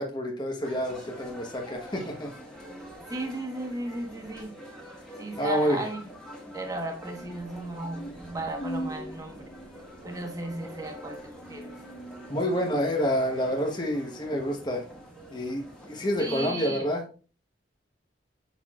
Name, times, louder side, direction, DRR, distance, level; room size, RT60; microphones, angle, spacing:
voice 1, 0.0-2.3 5.4-5.8 12.3-14.8 15.3-17.0, equal, 25° left, 0 dB, 1.0 m, -28 dB
sound 1, 0.6-16.5, equal, 5° left, 1.5 m, -46 dB
voice 2, 3.1-4.5 5.2-6.0 6.5-9.5 10.0-11.7 16.2-16.8, right 2 dB, 20° right, 3 dB, 1.2 m, -35 dB
sound 2, 7.2-12.9, right 1 dB, 45° left, 1.0 m, -42 dB
6.8 x 5.8 x 2.4 m, 0.36 s
head